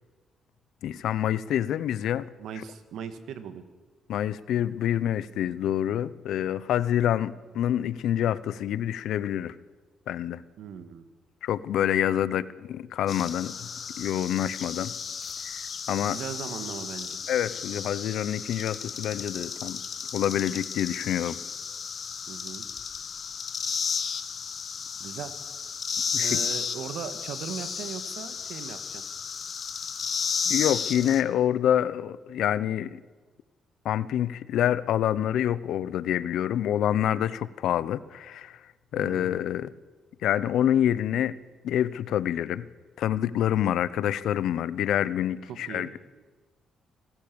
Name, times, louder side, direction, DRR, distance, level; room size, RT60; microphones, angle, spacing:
voice 1, 0.8-2.3 4.1-9.5 10.1-10.4 11.4-13.7 14.0-14.9 15.4-15.6 15.9-16.2 17.3-19.8 20.1-21.4 26.1-26.4 30.5-33.0 33.8-38.6 38.9-39.7 40.2-41.4 41.6-42.7 43.0-45.9, left 10 dB, 75° left, 17 dB, 0.8 m, -27 dB
voice 2, 2.4-3.6 10.6-11.0 16.1-17.2 22.3-22.7 25.0-25.3 26.2-29.0 38.9-39.4 45.5-45.9, right 8 dB, 75° right, 10 dB, 1.9 m, -38 dB
sound 1, 13.1-31.2, left 6 dB, 50° left, 1.5 m, -33 dB
26.0 x 15.5 x 7.1 m, 1.3 s
cardioid pair, 90°, 0 cm